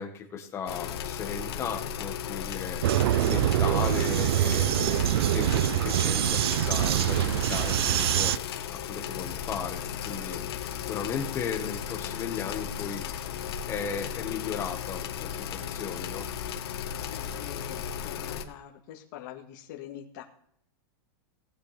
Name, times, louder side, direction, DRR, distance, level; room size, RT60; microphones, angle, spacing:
voice 1, 0.0-2.8 3.2-6.4 6.6-8.3 8.7-10.4 10.7-13.0 13.7-16.3, left 7 dB, 20° left, 3 dB, 1.7 m, -36 dB
sound 1, 0.7-18.4, left 8 dB, 85° left, 1.6 m, -35 dB
Vehicle, 2.8-8.4, right 13 dB, 80° right, 0.5 m, -25 dB
voice 2, 17.1-20.2, left 11 dB, 50° left, 1 dB, 1.9 m, -45 dB
18.5 x 8.5 x 3.6 m, 0.71 s
supercardioid pair, 160°, 13 cm